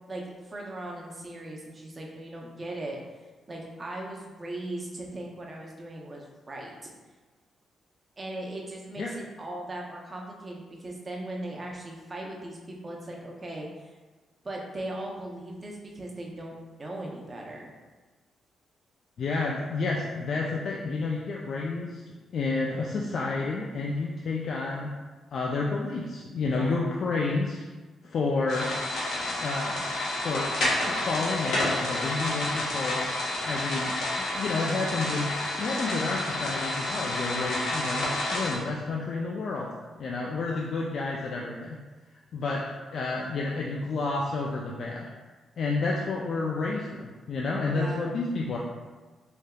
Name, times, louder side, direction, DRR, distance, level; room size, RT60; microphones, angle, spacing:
voice 1, 0.1-3.0 3.5-6.9 8.2-13.9 14.4-17.7 26.5-26.8 47.7-48.1, right 1 dB, 35° right, -1 dB, 0.6 m, -38 dB
voice 2, 19.2-22.0 22.3-24.9 25.3-27.6 28.0-28.7 29.4-29.8 30.2-30.5 30.8-33.1 33.4-35.3 35.6-39.7 40.0-41.8 42.3-45.1 45.6-48.6, left 3 dB, 65° left, -3 dB, 0.3 m, -30 dB
sound 1, 28.5-38.6, left 1 dB, 85° left, 1.0 m, -30 dB
3.4 x 2.7 x 2.3 m, 1.3 s
cardioid pair, 75°, 0 cm